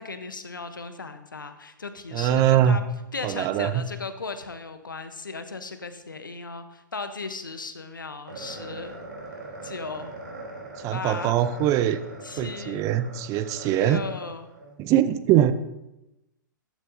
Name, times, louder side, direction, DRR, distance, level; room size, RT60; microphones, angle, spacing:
voice 1, 0.0-2.8 3.1-8.9 9.6-10.1 10.9-11.4 12.2-12.8 13.7-14.5 15.4-15.5, left 4 dB, 80° left, 9 dB, 1.0 m, -36 dB
voice 2, 2.1-2.8 3.2-3.8 10.8-12.0 12.4-14.0 14.8-15.5, right 11 dB, 30° right, 13 dB, 0.6 m, -22 dB
sound 1, 8.3-14.7, right 2 dB, 70° right, 3.6 m, -41 dB
14.0 x 10.0 x 2.8 m, 0.95 s
figure-of-eight pair, 110°, 11 cm